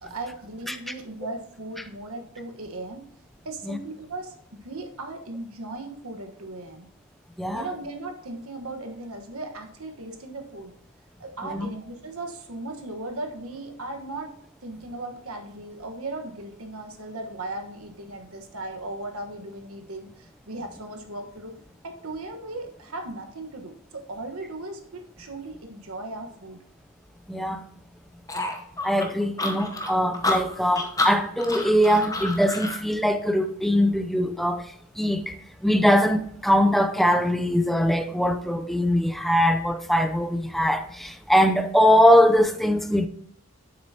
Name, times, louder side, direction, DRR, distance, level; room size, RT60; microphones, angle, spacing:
voice 1, 0.0-3.0 3.4-4.3 4.6-6.9 7.5-10.7 11.2-14.3 14.6-21.6 21.8-26.6 32.0-32.2, right 2 dB, 75° right, 1.4 m, -37 dB
voice 2, 27.3-27.6 28.8-34.6 35.0-35.4 35.6-43.1, equal, ahead, 0.5 m, -21 dB
sound 1, 28.3-32.8, left 2 dB, 15° left, 0.9 m, -29 dB
9.4 x 7.5 x 2.9 m
head